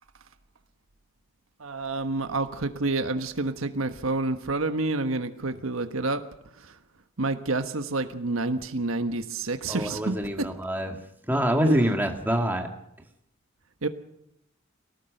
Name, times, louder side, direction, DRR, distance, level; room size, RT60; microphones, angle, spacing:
voice 1, 1.6-6.2 7.2-10.2 11.7-11.8 13.8-13.9, right 2 dB, 80° right, 8 dB, 1.4 m, -28 dB
voice 2, 9.7-11.0 11.3-12.7, equal, 10° right, 3 dB, 2.1 m, -25 dB
22.5 x 18.5 x 6.6 m, 0.78 s
head